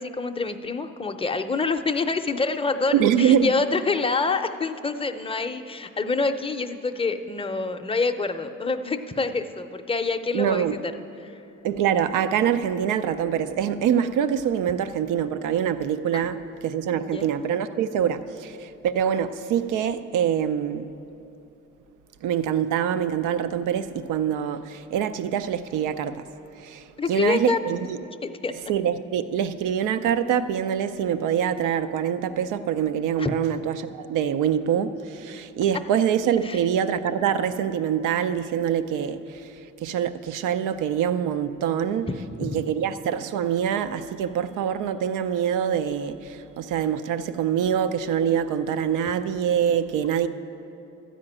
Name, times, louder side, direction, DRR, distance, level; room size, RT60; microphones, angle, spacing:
voice 1, 0.0-10.8 11.2-11.4 16.1-16.2 16.9-17.3 27.0-27.6 28.2-28.7 33.2-33.3 36.4-36.6 42.4-42.6, left 4 dB, 20° left, 0.5 m, -26 dB
voice 2, 2.9-3.5 10.3-10.7 11.6-20.9 22.2-26.2 26.6-26.8 27.1-28.0 28.7-39.2 39.8-42.1 42.4-50.3, right 9 dB, 90° right, 0.5 m, -25 dB
12.5 x 5.1 x 8.7 m
cardioid pair, 90°, 30 cm